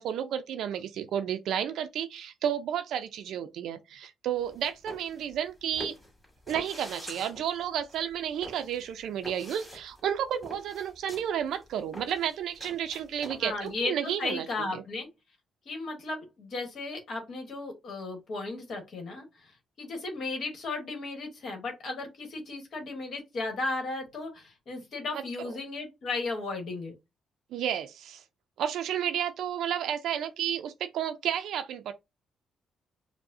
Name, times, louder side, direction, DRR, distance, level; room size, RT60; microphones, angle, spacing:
voice 1, 0.0-5.9 6.5-14.8 25.1-25.2 27.5-28.2 28.6-31.9, right 9 dB, 75° right, 0.4 m, -32 dB
sound 1, 4.4-13.7, left 1 dB, 5° left, 2.1 m, -45 dB
voice 2, 13.4-15.1 15.6-19.5 19.8-26.9, left 3 dB, 60° left, 1.2 m, -35 dB
4.6 x 2.0 x 2.6 m
cardioid pair, 90°, 0 cm